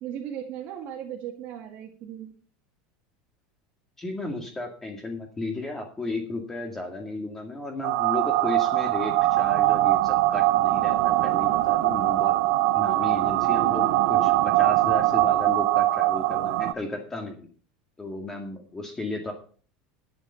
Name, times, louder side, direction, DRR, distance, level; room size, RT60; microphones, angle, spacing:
voice 1, 0.0-2.3, right 10 dB, 45° right, 1 dB, 1.9 m, -37 dB
voice 2, 4.0-12.3 12.7-17.5 18.0-19.3, left 2 dB, 10° left, 3 dB, 2.0 m, -34 dB
sound 1, 7.8-16.7, right 17 dB, 65° right, 0.7 m, -22 dB
11.5 x 8.5 x 5.7 m, 0.42 s
supercardioid pair, 150°, 3 cm